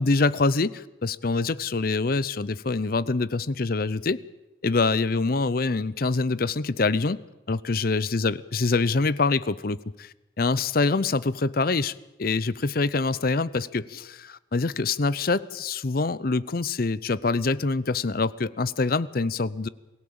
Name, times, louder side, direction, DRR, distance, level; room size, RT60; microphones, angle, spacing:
voice 1, 0.0-4.2 4.6-7.2 7.5-10.1 10.4-11.9 12.2-19.7, left 3 dB, 50° left, 18 dB, 0.7 m, -25 dB
23.5 x 16.5 x 8.7 m, 1.0 s
head